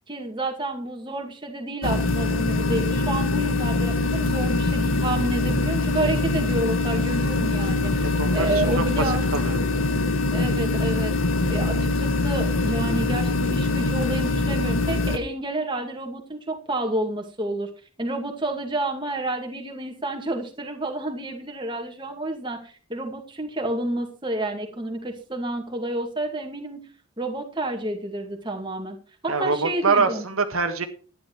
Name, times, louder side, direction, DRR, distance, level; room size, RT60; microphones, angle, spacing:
voice 1, 0.1-9.6 10.3-11.1 11.5-17.7 18.0-26.8 27.2-29.0 29.2-30.3, right 2 dB, 20° right, 3 dB, 2.2 m, -30 dB
sound 1, 1.8-15.2, left 2 dB, 70° left, 1.5 m, -23 dB
voice 2, 8.2-8.8 9.3-9.6 29.3-30.8, right 4 dB, 75° right, 6 dB, 1.7 m, -24 dB
12.0 x 10.0 x 4.6 m, 0.38 s
head